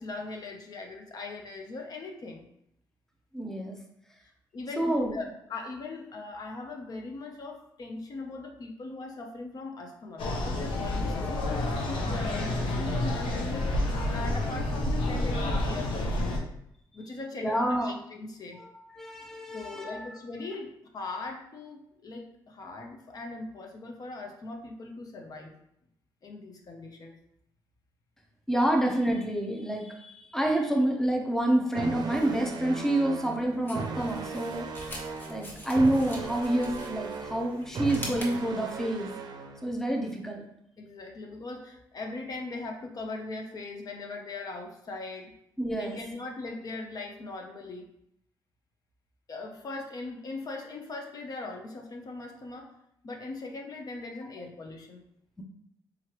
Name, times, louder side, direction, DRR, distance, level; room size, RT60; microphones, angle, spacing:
voice 1, 0.0-2.4 4.5-4.8 5.1-16.4 16.9-18.6 19.5-25.5 26.2-27.2 40.8-45.3 45.7-47.9 49.3-52.7 53.0-55.0, left 3 dB, 50° left, 2 dB, 0.6 m, -40 dB
voice 2, 3.3-3.8 4.8-5.2 17.4-17.9 18.6-20.1 28.5-35.0 35.3-39.1 39.6-40.4 45.6-46.0, right 1 dB, 5° left, 1 dB, 0.6 m, -28 dB
sound 1, 10.2-16.4, left 1 dB, 90° left, 0.7 m, -29 dB
sound 2, 31.7-39.7, right 4 dB, 55° right, 0.5 m, -37 dB
sound 3, 32.1-38.4, left 1 dB, 25° left, 1.0 m, -45 dB
3.8 x 3.1 x 2.9 m, 0.75 s
cardioid pair, 90°, 8 cm